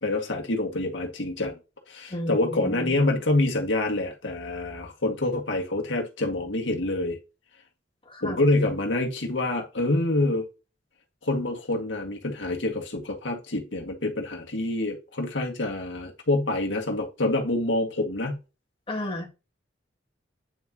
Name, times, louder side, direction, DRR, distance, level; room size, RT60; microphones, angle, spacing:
voice 1, 0.0-1.6 1.9-7.2 8.2-10.5 11.2-18.4, left 2 dB, 80° left, 1.9 m, -26 dB
voice 2, 2.1-3.0 8.1-8.5 18.9-19.3, left 1 dB, 30° left, 2.2 m, -32 dB
9.4 x 6.0 x 2.9 m
head